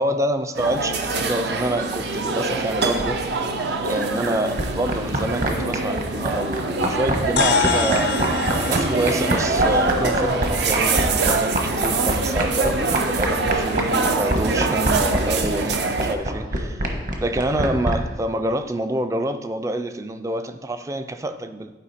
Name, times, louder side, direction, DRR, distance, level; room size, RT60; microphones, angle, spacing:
voice 1, 0.0-3.2 3.6-8.2 8.7-16.9 17.2-21.7, right 1 dB, 15° right, 9 dB, 0.3 m, -27 dB
sound 1, 0.5-16.1, right 3 dB, 70° right, 0.6 m, -24 dB
sound 2, 4.6-17.9, right 1 dB, 50° right, 1.2 m, -23 dB
sound 3, 7.4-12.0, left 6 dB, 70° left, 0.4 m, -28 dB
11.0 x 4.8 x 4.2 m, 1.2 s
head